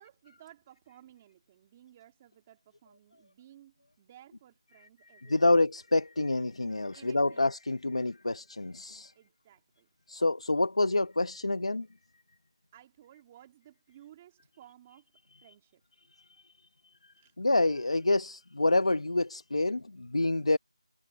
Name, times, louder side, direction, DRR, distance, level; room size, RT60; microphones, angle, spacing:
voice 1, 0.0-5.6 6.9-7.5 9.1-9.9 12.7-15.1 15.4-15.8 17.2-17.3, right 12 dB, 15° right, 2.2 m, -57 dB
voice 2, 5.1-9.1 10.1-11.9 16.1-16.5 16.8-20.6, left 2 dB, 80° left, 1.0 m, -28 dB
figure-of-eight pair, 175°, 3 cm